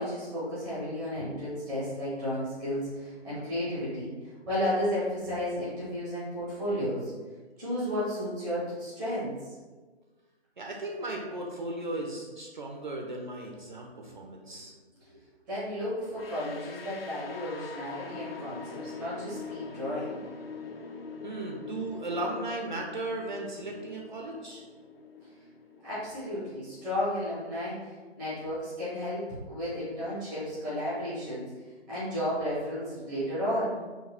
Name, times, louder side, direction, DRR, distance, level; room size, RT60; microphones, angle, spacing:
voice 1, 0.0-7.1 7.6-9.6 15.1-15.2 15.5-20.2 25.8-31.4 31.9-33.8, equal, ahead, -11 dB, 0.6 m, -33 dB
voice 2, 10.6-14.7 21.2-24.6, right 2 dB, 45° right, 0 dB, 0.5 m, -36 dB
sound 1, 16.1-27.0, left 4 dB, 60° left, 0.5 m, -44 dB
4.0 x 2.1 x 4.2 m, 1.3 s
figure-of-eight pair, 150°, 34 cm